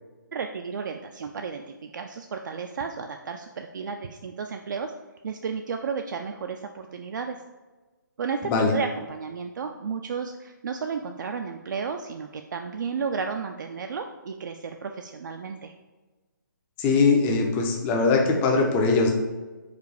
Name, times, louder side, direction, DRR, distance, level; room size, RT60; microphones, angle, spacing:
voice 1, 0.3-4.9 5.2-7.4 8.2-15.7, right 5 dB, 65° right, 4 dB, 0.4 m, -33 dB
voice 2, 16.8-19.1, left 4 dB, 15° left, 2 dB, 0.5 m, -21 dB
4.9 x 2.3 x 4.7 m, 1.2 s
hypercardioid pair, 155°, 11 cm